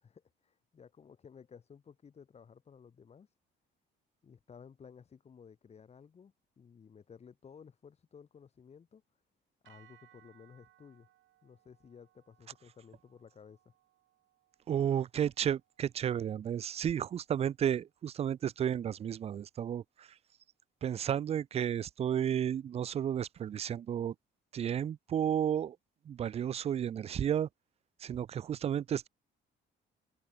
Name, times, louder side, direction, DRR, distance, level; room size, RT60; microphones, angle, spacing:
voice 1, 0.0-3.3 4.2-9.0 9.6-11.1 11.4-13.7, left 6 dB, 30° left, 6.2 m, -56 dB
sound 1, 9.6-17.9, right 14 dB, 75° right, 6.4 m, -68 dB
voice 2, 14.7-20.1 20.8-24.1 24.5-25.8 26.1-27.5 28.0-29.1, right 9 dB, 30° right, 0.4 m, -32 dB
cardioid pair, 155°, 20 cm